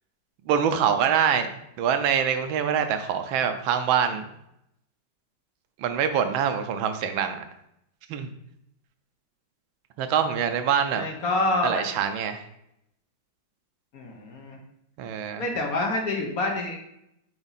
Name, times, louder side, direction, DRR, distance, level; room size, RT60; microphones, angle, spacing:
voice 1, 0.5-4.3 5.8-7.4 8.1-8.3 10.0-11.0 11.6-12.4 15.0-15.4, right 8 dB, 85° right, 8 dB, 1.4 m, -25 dB
voice 2, 10.9-11.8 13.9-14.6 15.4-16.8, left 2 dB, 55° left, 0 dB, 1.2 m, -27 dB
6.9 x 3.5 x 4.0 m, 0.78 s
omnidirectional pair, 2.1 m